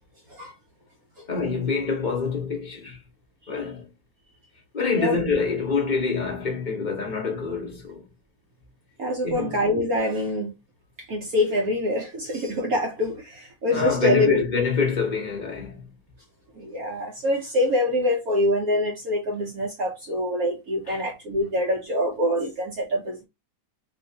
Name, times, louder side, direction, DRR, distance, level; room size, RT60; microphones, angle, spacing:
voice 1, 1.3-3.0 3.5-3.9 4.7-8.1 9.2-9.6 13.7-15.8 20.9-21.0, left 5 dB, 40° left, 0.7 m, -26 dB
voice 2, 9.0-10.5 11.1-14.4 16.6-23.3, left 1 dB, 60° right, 1.0 m, -25 dB
4.2 x 2.4 x 2.7 m
omnidirectional pair, 2.2 m